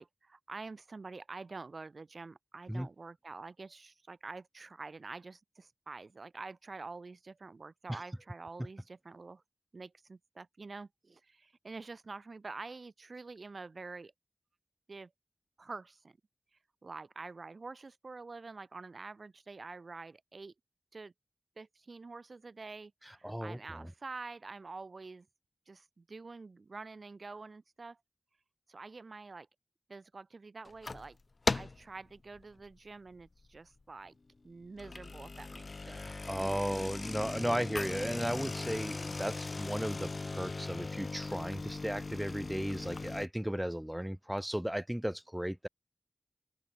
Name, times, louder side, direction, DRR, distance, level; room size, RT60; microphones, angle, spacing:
voice 1, 0.0-9.4 9.7-14.1 14.9-15.1 15.6-16.2 16.8-20.5 20.9-21.1 21.6-25.3 25.7-28.0 28.7-29.5 29.9-31.2 31.5-34.1 34.4-36.0, right 3 dB, 80° right, 2.1 m, -47 dB
voice 2, 23.2-23.9 35.9-45.7, equal, 10° right, 2.2 m, -35 dB
sound 1, 30.7-31.1 31.5-31.9 32.4-32.7 33.2-33.3 33.6-33.7 34.6-43.3, left 3 dB, 70° left, 0.3 m, -38 dB
open air
wide cardioid pair, 45°, 0 cm